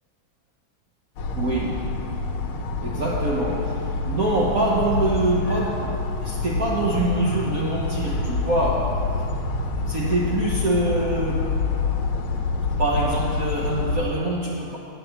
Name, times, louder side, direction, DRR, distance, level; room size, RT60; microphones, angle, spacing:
sound 1, 1.2-14.0, left 3 dB, 80° left, 1.8 m, -27 dB
voice 1, 1.3-1.9 2.8-9.1 9.9-11.6 12.8-14.8, right 1 dB, 50° right, -4 dB, 1.3 m, -25 dB
8.8 x 8.5 x 7.4 m, 2.4 s
omnidirectional pair, 2.3 m